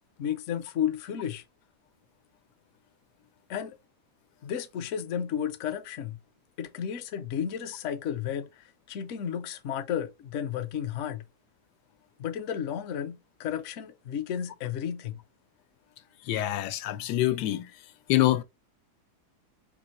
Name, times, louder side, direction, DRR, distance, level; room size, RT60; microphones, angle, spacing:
voice 1, 0.2-1.4 3.5-3.8 4.4-6.2 6.6-11.2 12.2-15.2, left 9 dB, 60° left, 0.8 m, -33 dB
voice 2, 16.3-17.6 18.1-18.4, left 14 dB, 85° left, 1.2 m, -25 dB
5.1 x 3.0 x 2.9 m
omnidirectional pair, 1.7 m